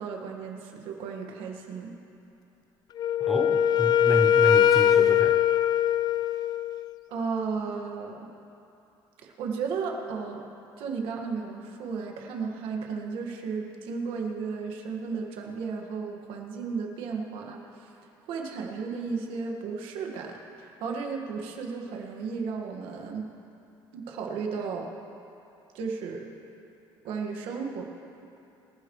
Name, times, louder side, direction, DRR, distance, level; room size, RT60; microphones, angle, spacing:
voice 1, 0.0-1.9 7.1-8.2 9.2-10.4 10.8-17.9 18.3-23.3 23.9-24.9 25.7-26.3 27.0-27.8, right 5 dB, 80° right, 1 dB, 1.8 m, -34 dB
Wind instrument woodwind instrument, 3.0-6.8, left 9 dB, 50° left, 0.4 m, -21 dB
voice 2, 3.2-5.4, equal, ahead, 2 dB, 0.9 m, -31 dB
26.0 x 11.0 x 3.2 m, 2.7 s
cardioid pair, 105°, 9 cm